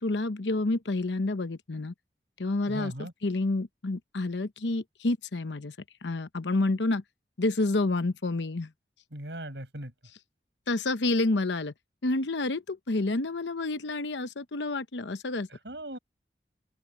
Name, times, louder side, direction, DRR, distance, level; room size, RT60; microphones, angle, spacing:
voice 1, 0.0-1.9 2.4-2.9 3.2-5.7 6.0-7.0 7.4-8.7 10.7-11.7 12.0-15.5, left 2 dB, 90° left, 0.9 m, -29 dB
voice 2, 2.7-3.1 9.1-9.9 15.5-16.0, right 1 dB, 80° right, 7.2 m, -38 dB
open air
head